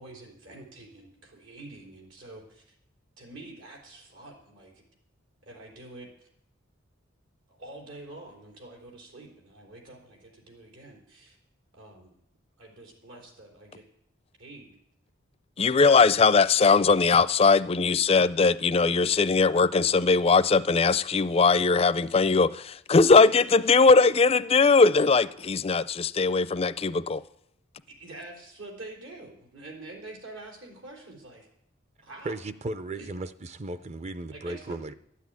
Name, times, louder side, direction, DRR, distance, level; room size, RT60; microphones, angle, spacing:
voice 1, 0.0-2.8 3.2-4.7 5.4-6.1 7.5-11.4 11.7-12.2 12.6-13.8 14.4-14.7 15.6-15.8 27.9-31.5 32.0-32.3 33.0-33.1 34.3-34.8, right 2 dB, 85° right, 3.8 m, -46 dB
voice 2, 15.6-27.2, left 4 dB, 30° left, 0.4 m, -20 dB
voice 3, 32.2-34.9, right 2 dB, 35° right, 0.5 m, -35 dB
12.5 x 8.4 x 9.4 m
head